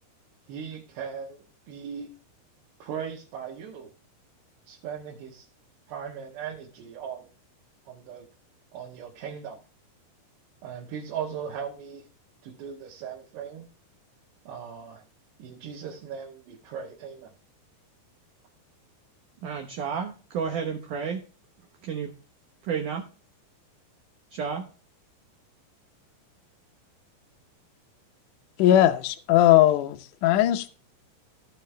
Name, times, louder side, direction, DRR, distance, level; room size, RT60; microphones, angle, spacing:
voice 1, 0.5-2.1 2.8-3.9 4.7-5.5 5.9-7.3 7.9-8.3 8.7-9.6 10.6-12.0 12.4-13.7 14.5-15.0 15.4-17.3, right 7 dB, 85° right, -4 dB, 3.7 m, -38 dB
voice 2, 19.4-21.2 21.8-22.1 22.6-23.0 24.3-24.7, right 6 dB, 70° right, 3 dB, 2.1 m, -31 dB
voice 3, 28.6-30.7, left 13 dB, 90° left, 7 dB, 1.7 m, -19 dB
16.0 x 5.4 x 3.3 m, 0.37 s
omnidirectional pair, 4.7 m